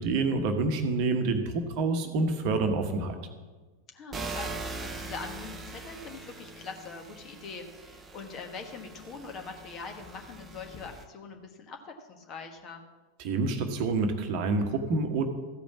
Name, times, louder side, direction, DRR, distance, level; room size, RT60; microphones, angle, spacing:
voice 1, 0.0-3.2 13.2-15.3, right 3 dB, 45° right, 7 dB, 1.1 m, -27 dB
voice 2, 3.9-12.8, left 4 dB, 30° left, 4 dB, 1.5 m, -43 dB
sound 1, 4.1-11.1, right 3 dB, 20° right, 0.8 m, -42 dB
14.0 x 5.2 x 7.2 m, 1.3 s
figure-of-eight pair, 90°, 0 cm